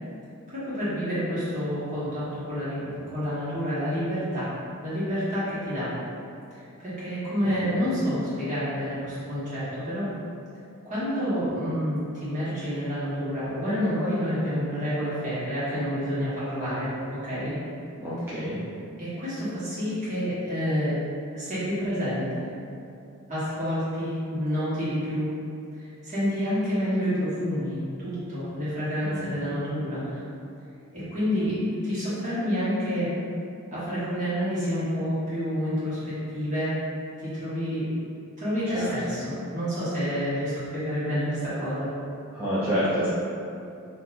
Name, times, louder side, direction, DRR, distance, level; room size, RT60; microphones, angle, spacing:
voice 1, 0.5-4.5 4.8-5.9 6.6-10.1 10.8-17.5 19.0-21.0 21.3-22.5 23.3-25.3 25.8-30.2 30.9-33.1 33.7-36.8 37.2-37.9 38.4-41.9, equal, 35° right, -12 dB, 1.4 m, -28 dB
voice 2, 7.4-7.8 18.0-18.6 29.2-29.3 38.7-38.9 42.3-43.1, equal, 10° right, -12 dB, 0.5 m, -28 dB
3.7 x 2.7 x 2.6 m, 2.6 s
head